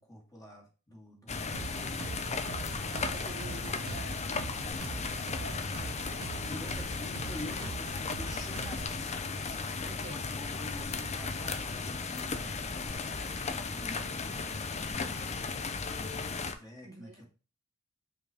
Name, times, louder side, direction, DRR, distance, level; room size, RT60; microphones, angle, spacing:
voice 1, 0.0-2.1 4.7-5.2 6.4-9.3 10.1-17.2, left 1 dB, 15° left, -1 dB, 2.2 m, -48 dB
sound 1, 1.3-16.5, left 4 dB, 30° left, 0.6 m, -35 dB
sound 2, 1.5-9.0, right 4 dB, 70° right, 0.6 m, -43 dB
voice 2, 2.7-4.8 5.1-6.6 9.8-10.2 16.8-17.2, right 3 dB, 35° right, 1 dB, 1.4 m, -50 dB
5.9 x 4.7 x 3.4 m, 0.34 s
head